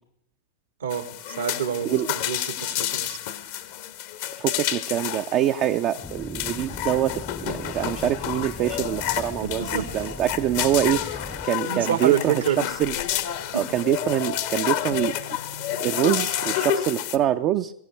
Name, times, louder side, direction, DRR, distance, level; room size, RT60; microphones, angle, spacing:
voice 1, 0.8-3.2 8.7-8.8 9.4-10.1 11.3-12.6 13.5-13.7, right 8 dB, 75° right, 9 dB, 1.5 m, -28 dB
sound 1, 0.9-17.2, left 11 dB, 60° left, 1.0 m, -30 dB
voice 2, 4.4-12.4 12.8-12.9 13.5-15.1 15.8-17.7, right 12 dB, 40° right, 6 dB, 0.5 m, -25 dB
sound 2, 6.0-11.5, left 3 dB, 10° left, 0.5 m, -39 dB
sound 3, 7.7-16.6, left 6 dB, 75° left, 1.5 m, -48 dB
22.0 x 15.5 x 3.3 m, 0.73 s
hypercardioid pair, 95°, 0 cm